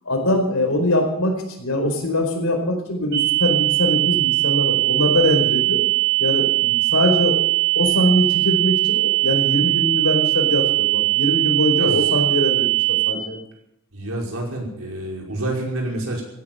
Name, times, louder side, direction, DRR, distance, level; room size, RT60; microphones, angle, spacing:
voice 1, 0.0-5.8 6.2-13.4, left 1 dB, 75° left, 3 dB, 4.7 m, -22 dB
sound 1, 3.1-13.1, right 22 dB, 50° right, 6.5 m, -20 dB
voice 2, 13.9-16.2, right 1 dB, 75° right, -1 dB, 5.4 m, -28 dB
16.0 x 11.0 x 8.0 m, 0.82 s
head